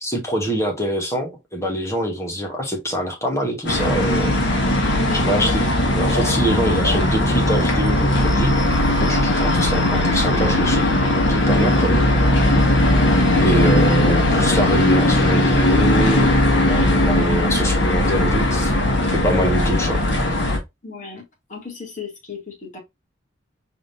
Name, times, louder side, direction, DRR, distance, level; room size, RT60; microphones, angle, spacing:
voice 1, 0.0-4.4 5.1-8.5 9.0-10.9 11.3-12.1 12.5-12.7 13.4-18.7 19.1-20.0, equal, 15° left, 1.3 m, -24 dB
sound 1, 3.7-20.6, left 1 dB, 65° left, 1.5 m, -18 dB
voice 2, 4.9-5.3 20.8-21.2 21.5-22.8, left 4 dB, 45° left, 2.3 m, -34 dB
4.8 x 3.6 x 2.6 m
head